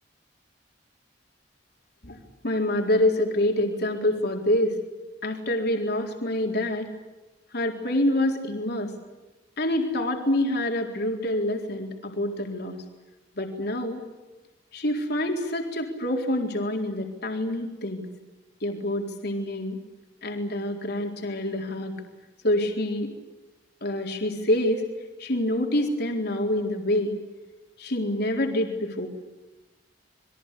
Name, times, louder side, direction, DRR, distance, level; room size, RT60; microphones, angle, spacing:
voice 1, 2.0-4.8 5.2-6.9 7.5-8.9 9.6-12.8 13.4-14.0 14.7-18.1 18.6-19.8 20.2-21.9 22.4-23.1 23.8-24.8 25.2-27.1 27.8-29.1, left 1 dB, 60° left, 2 dB, 4.1 m, -26 dB
28.5 x 22.5 x 8.5 m, 1.1 s
head